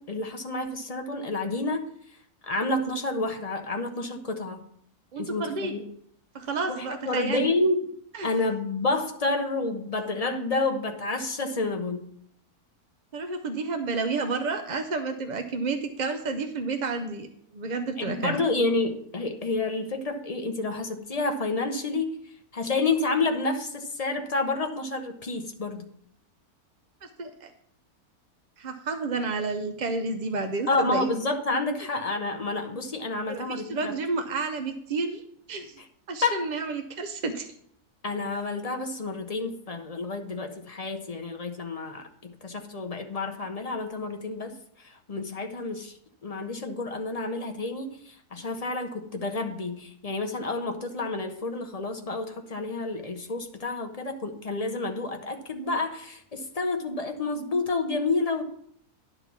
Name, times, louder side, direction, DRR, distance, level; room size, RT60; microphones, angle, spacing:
voice 1, 0.0-1.8 2.4-4.6 5.2-5.8 6.7-7.9 8.2-12.1 18.0-22.2 22.5-25.9 30.7-33.9 36.2-36.5 38.0-45.9 46.2-58.4, left 3 dB, 35° left, 5 dB, 0.6 m, -29 dB
voice 2, 5.1-5.7 6.3-7.5 8.1-8.3 13.1-17.3 17.5-18.4 27.0-27.5 28.6-31.1 33.3-35.2 35.5-35.8 36.1-37.5, right 3 dB, 55° right, 6 dB, 0.5 m, -30 dB
10.5 x 4.1 x 7.0 m, 0.66 s
omnidirectional pair, 1.6 m